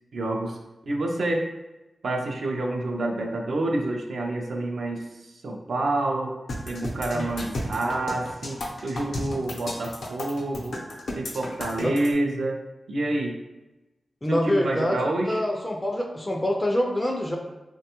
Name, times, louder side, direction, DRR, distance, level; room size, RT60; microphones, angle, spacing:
voice 1, 0.1-0.6 0.9-1.5 2.0-6.3 6.7-10.8 11.2-12.6 12.9-13.4 14.3-15.4, right 2 dB, 70° right, 1 dB, 0.4 m, -28 dB
sound 1, 6.5-12.1, left 1 dB, 80° left, 0.6 m, -33 dB
voice 2, 14.2-17.4, left 1 dB, 20° left, 1 dB, 0.3 m, -26 dB
3.3 x 2.2 x 2.8 m, 1.0 s
wide cardioid pair, 90°, 0 cm